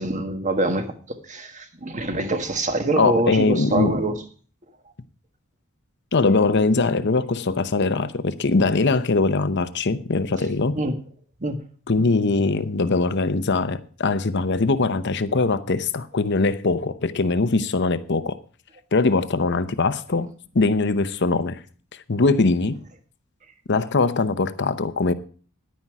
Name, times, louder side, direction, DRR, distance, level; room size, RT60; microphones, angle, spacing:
voice 1, 0.0-4.2 10.7-10.9 11.4-11.6, right 2 dB, 35° right, 1.4 m, -25 dB
voice 2, 3.0-3.9 6.1-10.8 11.9-18.4 18.9-21.6 22.1-22.8 23.7-25.1, left 3 dB, 55° left, 0.8 m, -21 dB
10.5 x 9.8 x 4.8 m
head